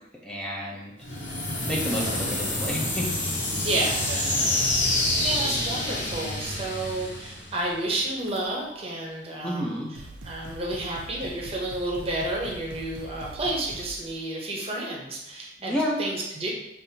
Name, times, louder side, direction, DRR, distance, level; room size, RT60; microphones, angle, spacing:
voice 1, 0.2-0.9 1.7-3.1 9.4-10.0 15.6-16.0, equal, 5° left, -3 dB, 0.5 m, -30 dB
sound 1, 1.0-7.9, left 1 dB, 85° left, 1.2 m, -27 dB
voice 2, 3.6-9.8 10.2-16.5, right 2 dB, 30° right, -2 dB, 0.8 m, -31 dB
sound 2, 8.2-8.8 9.6-9.7 9.9-14.2, right 2 dB, 85° right, 0.5 m, -43 dB
5.1 x 2.5 x 2.8 m, 0.84 s
head